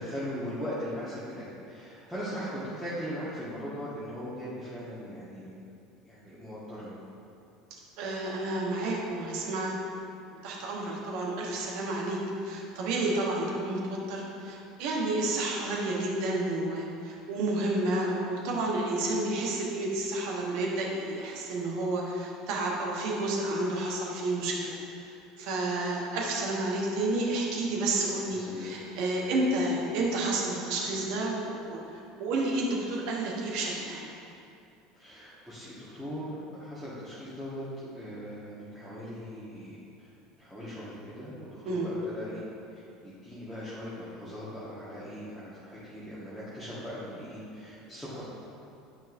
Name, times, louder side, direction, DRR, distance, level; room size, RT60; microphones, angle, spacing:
voice 1, 0.0-5.6 6.0-6.9 28.3-28.9 34.9-40.1 40.4-42.4 42.7-48.2, equal, ahead, -11 dB, 1.5 m, -39 dB
voice 2, 8.0-9.7 10.4-24.8 25.4-31.8 32.2-34.0 41.7-41.9, right 2 dB, 55° right, -2 dB, 1.1 m, -30 dB
9.0 x 5.3 x 2.6 m, 2.6 s
figure-of-eight pair, 70°, 0 cm